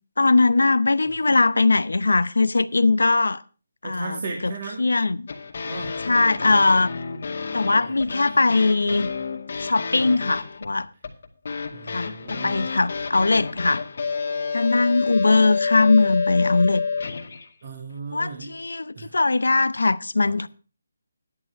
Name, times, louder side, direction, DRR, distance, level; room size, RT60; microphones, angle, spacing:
voice 1, 0.2-3.4 3.8-4.2 4.8-5.3 6.0-6.9 7.5-9.1 9.6-10.9 11.9-13.8 14.5-16.8 18.1-20.5, left 3 dB, 85° left, 0.8 m, -20 dB
voice 2, 3.8-4.8 5.6-5.9 8.3-8.4 11.7-12.7 17.6-18.6 18.9-19.1 20.2-20.3, right 3 dB, 45° right, 2.2 m, -35 dB
sound 1, 5.3-17.5, left 5 dB, 55° left, 2.1 m, -29 dB
11.0 x 11.0 x 4.7 m
figure-of-eight pair, 165°, 0 cm